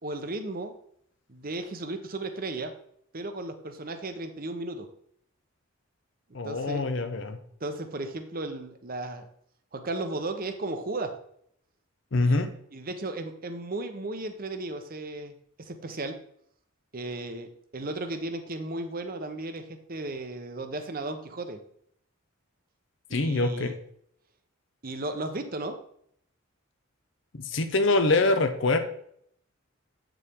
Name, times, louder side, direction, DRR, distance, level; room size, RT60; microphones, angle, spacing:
voice 1, 0.0-0.7 1.3-2.7 3.1-4.9 6.3-6.8 7.6-9.3 9.7-11.1 12.2-12.3 12.7-16.1 16.9-21.6 23.1-23.8 24.8-25.8, right 2 dB, 45° right, 7 dB, 0.9 m, -35 dB
voice 2, 6.3-7.4 12.1-12.5 23.1-23.7 27.4-28.8, left 2 dB, 60° left, 8 dB, 0.7 m, -24 dB
8.2 x 7.0 x 3.6 m, 0.67 s
head